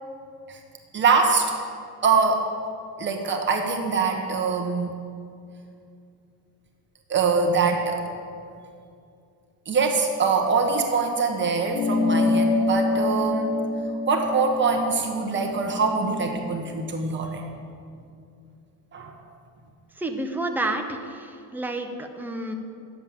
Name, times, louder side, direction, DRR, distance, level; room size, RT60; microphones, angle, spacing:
voice 1, 0.9-1.5 2.0-2.4 3.0-4.9 7.1-8.1 9.7-13.6 14.1-17.4 18.9-19.1, right 4 dB, 30° right, 2 dB, 1.4 m, -23 dB
sound 1, 11.7-16.5, left 2 dB, 75° left, 1.3 m, -26 dB
voice 2, 20.0-22.5, right 2 dB, 5° right, 3 dB, 0.7 m, -30 dB
10.0 x 7.7 x 7.4 m, 2.4 s
cardioid pair, 165°, 38 cm